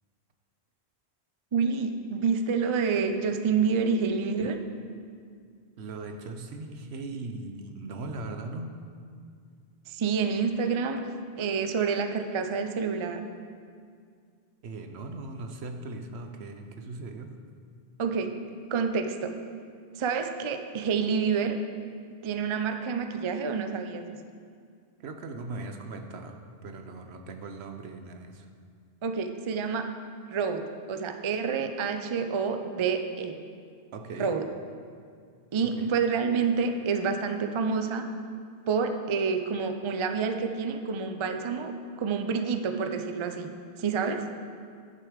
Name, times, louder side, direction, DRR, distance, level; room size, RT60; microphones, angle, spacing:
voice 1, 1.5-4.6 9.9-11.1 11.4-13.3 18.0-18.4 18.7-19.4 19.9-21.6 22.2-24.2 29.0-29.9 30.3-33.4 34.2-34.5 35.5-38.1 38.7-44.3, right 5 dB, 40° right, 7 dB, 0.4 m, -28 dB
voice 2, 5.8-8.8 14.6-17.4 25.0-28.5 33.9-34.3 35.8-35.9, right 3 dB, 75° right, 6 dB, 1.0 m, -39 dB
11.0 x 6.8 x 5.0 m, 2.2 s
omnidirectional pair, 1.1 m